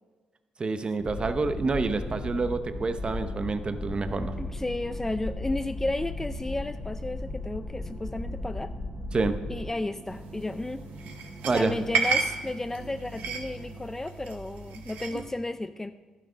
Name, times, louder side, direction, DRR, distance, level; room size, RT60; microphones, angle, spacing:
voice 1, 0.6-4.3 9.1-9.4 11.4-11.8, right 3 dB, 35° right, 10 dB, 0.7 m, -28 dB
sound 1, 1.0-9.7, left 2 dB, 45° left, 1.5 m, -36 dB
sound 2, 1.3-13.8, equal, 15° right, 2.3 m, -47 dB
voice 2, 4.4-8.7 9.5-10.8 11.5-15.9, left 2 dB, 15° left, 11 dB, 0.3 m, -33 dB
sound 3, 10.1-15.3, right 5 dB, 90° right, 1.2 m, -33 dB
12.0 x 7.4 x 5.1 m, 1.4 s
cardioid pair, 70°, 3 cm